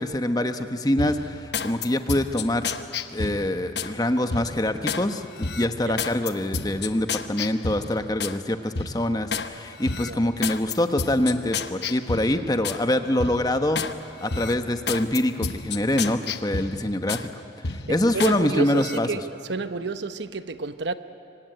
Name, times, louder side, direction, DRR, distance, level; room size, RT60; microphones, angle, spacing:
voice 1, 0.0-2.6 3.1-13.8 14.2-17.3 17.6-19.1, left 1 dB, 20° left, 1.1 m, -25 dB
sound 1, 1.0-3.9 4.3-5.0 5.4-8.4 8.8-9.5 9.8-12.8 13.2-13.9 14.3-17.3 17.6-18.4 18.7-19.0, left 5 dB, 60° left, 1.1 m, -31 dB
voice 2, 17.9-19.2 19.5-20.9, right 4 dB, 70° right, 0.9 m, -30 dB
26.5 x 24.5 x 9.2 m
head